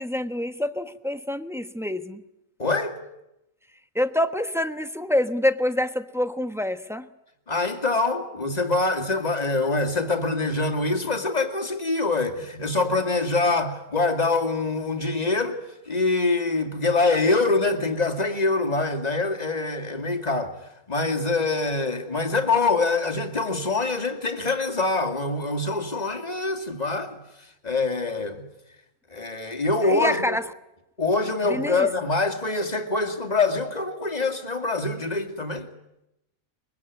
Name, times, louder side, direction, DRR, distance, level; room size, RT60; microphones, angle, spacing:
voice 1, 0.0-2.2 3.9-7.1 29.8-30.4 31.4-31.9, left 1 dB, ahead, 0.9 m, -26 dB
voice 2, 2.6-3.0 7.5-15.6 15.9-20.6 20.9-27.2 27.6-28.4 29.1-30.4 31.0-35.7, left 3 dB, 30° left, 2.4 m, -24 dB
23.5 x 22.5 x 9.5 m
omnidirectional pair, 1.4 m